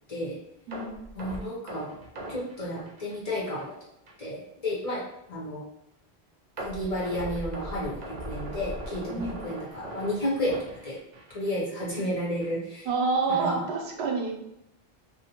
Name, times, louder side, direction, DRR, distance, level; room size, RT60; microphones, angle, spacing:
sound 1, 0.7-3.7 4.1-4.2 4.7-4.8 6.6-11.5 11.8-12.0 12.4-12.5, right 1 dB, 50° right, 0.6 m, -39 dB
voice 1, 1.2-1.9 2.3-3.7 4.2-5.6 6.6-11.0 11.3-12.9 13.3-13.6, left 1 dB, 40° left, -5 dB, 0.8 m, -32 dB
voice 2, 12.8-14.3, right 4 dB, 85° right, 2 dB, 0.8 m, -28 dB
2.5 x 2.1 x 2.8 m, 0.83 s
omnidirectional pair, 1.1 m